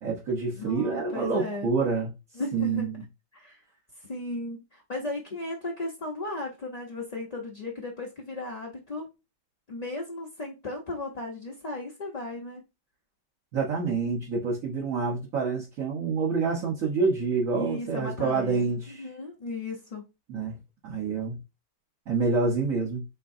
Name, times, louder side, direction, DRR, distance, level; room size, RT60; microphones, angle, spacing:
voice 1, 0.0-2.1 2.5-3.0 13.5-19.1 20.3-20.6 20.8-21.4 22.1-23.0, right 4 dB, 50° right, 1.5 m, -27 dB
voice 2, 0.5-1.7 2.3-2.9 3.3-3.6 4.0-9.0 9.7-12.6 17.5-20.0, left 2 dB, 35° left, 0.7 m, -35 dB
5.1 x 3.7 x 2.6 m
omnidirectional pair, 1.9 m